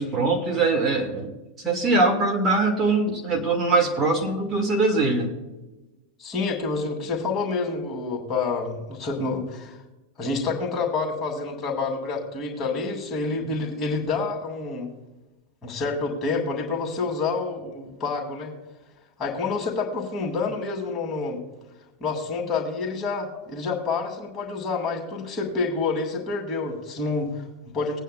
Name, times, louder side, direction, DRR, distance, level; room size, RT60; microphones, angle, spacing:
voice 1, 0.0-1.3 1.6-5.3, right 3 dB, 25° right, 1 dB, 1.9 m, -22 dB
voice 2, 6.2-9.8 10.2-14.9 15.6-18.5 19.2-21.4 22.0-28.0, left 4 dB, 25° left, 2 dB, 2.4 m, -28 dB
20.5 x 9.1 x 2.3 m, 1.1 s
figure-of-eight pair, 90°, 0 cm